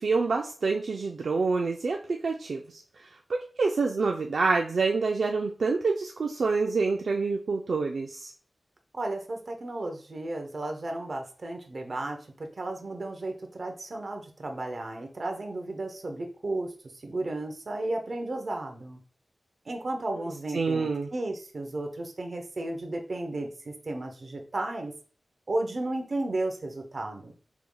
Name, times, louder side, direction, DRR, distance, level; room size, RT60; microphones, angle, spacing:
voice 1, 0.0-2.8 3.3-8.3 20.5-21.1, right 4 dB, 75° right, 2 dB, 0.4 m, -27 dB
voice 2, 8.9-16.7 17.0-19.0 19.7-24.9 25.5-27.3, right 2 dB, 55° right, 3 dB, 0.8 m, -34 dB
4.7 x 3.5 x 2.3 m, 0.40 s
wide cardioid pair, 80°, 0 cm